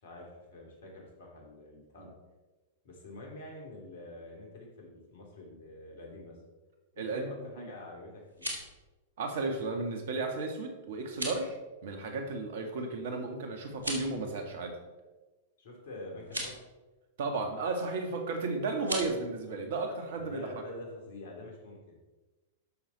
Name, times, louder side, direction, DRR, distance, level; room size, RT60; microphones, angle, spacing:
voice 1, 0.0-2.1 2.8-6.4 6.9-8.5 15.6-16.6 20.1-22.0, left 2 dB, 60° left, 0 dB, 3.3 m, -46 dB
voice 2, 7.0-7.3 7.6-7.7 9.2-14.8 17.2-20.5, right 3 dB, 60° right, 5 dB, 1.9 m, -34 dB
sound 1, 8.2-8.8 11.0-11.4 13.7-14.2 16.2-16.5 18.8-19.1, equal, 85° right, 2.7 m, -37 dB
13.5 x 6.4 x 4.2 m, 1.2 s
figure-of-eight pair, 100°, 0 cm